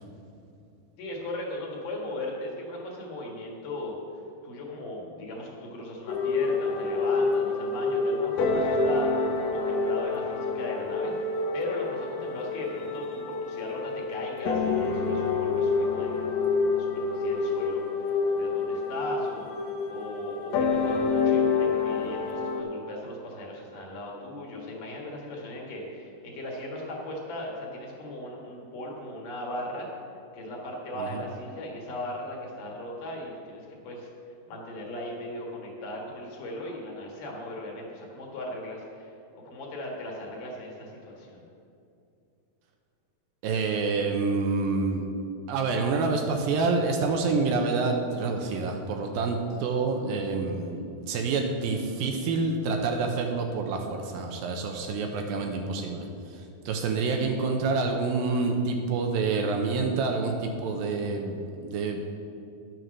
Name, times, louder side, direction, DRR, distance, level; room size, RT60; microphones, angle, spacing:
voice 1, 1.0-4.0 4.4-9.1 9.5-29.9 30.3-34.1 34.5-39.1 39.4-41.4, left 1 dB, 60° left, -1 dB, 3.1 m, -38 dB
sound 1, 6.1-22.6, left 4 dB, 80° left, 1.5 m, -27 dB
voice 2, 43.4-45.0 45.5-62.0, right 4 dB, 75° right, 3 dB, 2.4 m, -27 dB
11.0 x 7.6 x 6.4 m, 2.6 s
omnidirectional pair, 4.5 m